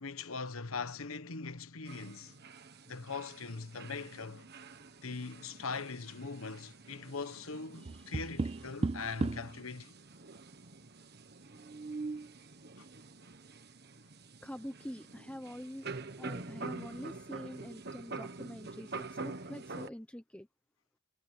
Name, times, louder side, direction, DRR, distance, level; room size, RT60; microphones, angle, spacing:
voice 1, 0.0-2.4 2.9-4.4 5.0-9.9 12.8-12.9 16.6-17.1, left 4 dB, 75° left, 1.3 m, -41 dB
sound 1, 1.9-19.9, right 3 dB, 50° right, 1.5 m, -47 dB
voice 2, 7.8-8.6 11.6-11.7 14.4-15.9 16.2-20.5, equal, 5° left, 0.9 m, -46 dB
Tap, 7.9-9.6 11.6-12.3, right 3 dB, 25° right, 0.3 m, -36 dB
head